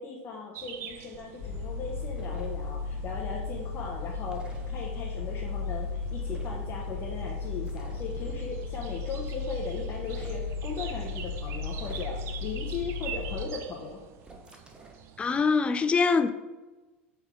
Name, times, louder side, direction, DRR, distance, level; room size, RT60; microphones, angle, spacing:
voice 1, 0.0-14.0, left 4 dB, 40° left, 1.0 m, -38 dB
sound 1, 0.5-15.6, right 9 dB, 45° right, 0.5 m, -47 dB
sound 2, 1.4-13.4, left 4 dB, 60° left, 1.1 m, -35 dB
sound 3, 2.1-2.5 4.3-4.6 6.3-6.7 7.6-8.4 9.9-10.4 11.8-12.4 14.2-15.0, right 3 dB, 15° right, 0.9 m, -49 dB
voice 2, 15.2-16.3, left 4 dB, 15° left, 0.4 m, -23 dB
6.0 x 3.4 x 4.8 m
figure-of-eight pair, 85°, 6 cm